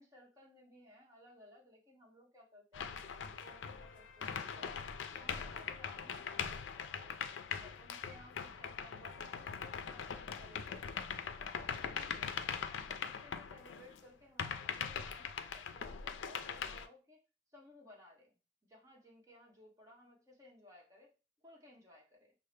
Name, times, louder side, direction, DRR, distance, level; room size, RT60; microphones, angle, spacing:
voice 1, 0.0-4.8 5.1-7.3 7.6-12.4 12.8-17.2 17.5-21.1 21.4-22.3, left 1 dB, 15° right, -2 dB, 1.0 m, -60 dB
sound 1, 2.7-14.0 14.4-16.9, left 7 dB, 85° left, 0.4 m, -41 dB
5.3 x 2.0 x 3.3 m, 0.33 s
head